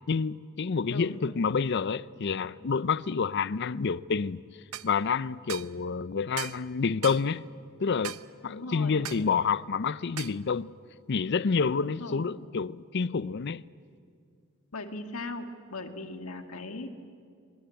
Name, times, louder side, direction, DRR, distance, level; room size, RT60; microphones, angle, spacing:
voice 1, 0.1-4.4 4.8-7.4 7.8-8.2 8.4-10.7 11.1-13.6, left 5 dB, 55° left, 0.5 m, -28 dB
sound 1, 4.7-4.9 5.5-5.7 6.4-6.6 7.0-7.2 8.0-8.3 9.1-9.3 10.2-10.4, right 11 dB, 85° right, 0.6 m, -38 dB
voice 2, 8.4-9.0 11.8-12.2 14.7-16.9, left 2 dB, 80° left, 1.8 m, -38 dB
23.5 x 21.0 x 9.1 m
head